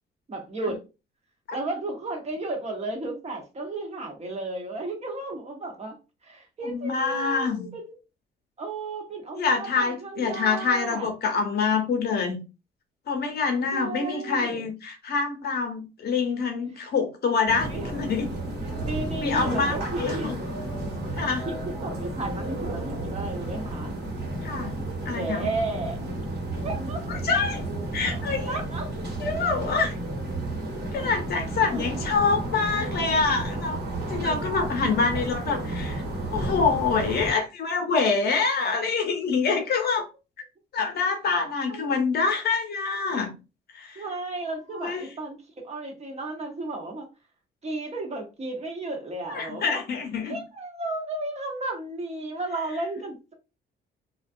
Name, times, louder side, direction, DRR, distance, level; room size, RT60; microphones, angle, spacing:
voice 1, 0.3-0.8 1.5-6.0 6.2-8.0 8.6-11.1 13.7-14.7 17.7-17.9 18.6-20.4 21.5-23.9 25.1-26.0 26.6-27.0 28.5-28.9 31.7-31.8 34.2-35.0 41.7-42.0 44.0-47.1 47.6-49.8 50.3-53.3, right 2 dB, 35° right, 0.9 m, -34 dB
voice 2, 6.6-7.7 9.3-12.4 13.1-18.3 19.2-20.4 21.1-21.5 24.4-24.8 25.0-25.5 27.1-27.6 27.9-28.6 29.2-30.0 30.9-33.8 34.1-36.0 36.3-40.1 40.7-43.3 43.7-44.0 44.7-45.1 49.3-50.4, left 4 dB, 55° left, 0.8 m, -26 dB
sound 1, 17.5-37.3, right 2 dB, 55° right, 1.1 m, -32 dB
2.3 x 2.2 x 2.5 m
cardioid pair, 90°, 20 cm